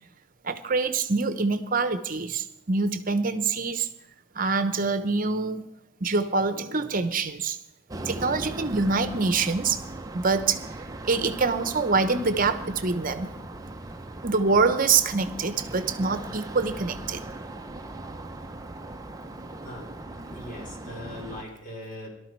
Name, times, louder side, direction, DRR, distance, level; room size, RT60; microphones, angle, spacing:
voice 1, 0.4-3.9 4.3-5.7 6.0-7.6 8.0-9.8 10.1-10.6 11.0-13.3 14.2-17.2, right 4 dB, 45° right, 11 dB, 1.0 m, -25 dB
sound 1, 7.9-21.4, right 2 dB, 15° right, 0.7 m, -39 dB
voice 2, 20.3-22.1, left 1 dB, 40° left, -1 dB, 4.0 m, -40 dB
18.0 x 12.5 x 4.6 m, 0.80 s
head